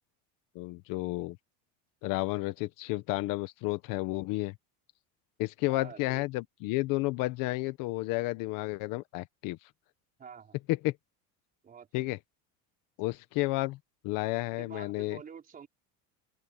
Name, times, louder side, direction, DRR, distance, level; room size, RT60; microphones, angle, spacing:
voice 1, 0.5-1.4 2.0-4.6 5.4-9.7 10.7-11.0 11.9-12.2 13.0-13.8 14.0-15.2, left 20 dB, 55° left, 1.1 m, -31 dB
voice 2, 5.7-6.2 10.2-10.6 11.6-12.1 14.6-15.7, right 7 dB, 20° right, 4.5 m, -48 dB
open air
cardioid pair, 175°, 38 cm